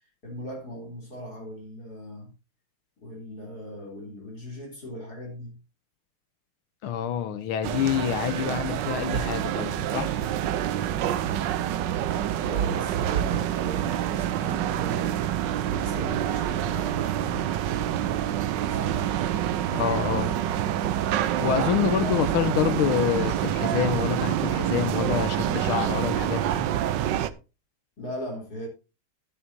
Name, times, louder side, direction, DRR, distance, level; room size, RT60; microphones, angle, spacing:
voice 1, 0.2-2.3 3.0-5.6 12.4-15.2 15.6-17.6 18.6-19.1 19.9-21.0 21.7-22.2 28.0-28.7, equal, 45° left, 4.0 m, -39 dB
voice 2, 6.8-10.2 19.7-20.3 21.4-26.7, left 9 dB, 80° left, 1.7 m, -27 dB
sound 1, 7.6-27.3, right 11 dB, 70° right, 1.2 m, -27 dB
11.5 x 10.5 x 2.7 m
omnidirectional pair, 2.4 m